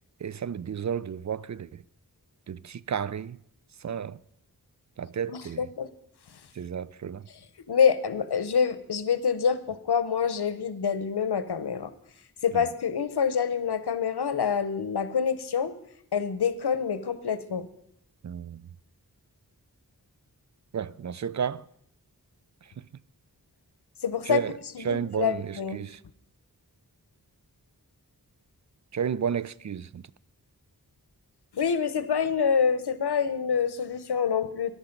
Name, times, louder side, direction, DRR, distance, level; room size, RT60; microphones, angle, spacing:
voice 1, 0.2-1.8 2.5-3.4 3.8-4.2 5.0-5.7 6.5-7.3 12.5-12.7 18.2-18.6 20.7-21.6 24.2-24.6 24.8-26.0 28.9-30.0, right 7 dB, 50° right, 0.4 m, -32 dB
voice 2, 5.3-5.9 7.7-11.9 12.4-15.7 16.1-17.7 24.0-24.4 24.7-25.9 31.5-34.7, left 7 dB, 90° left, 0.8 m, -26 dB
14.0 x 11.0 x 5.2 m
wide cardioid pair, 45°, 38 cm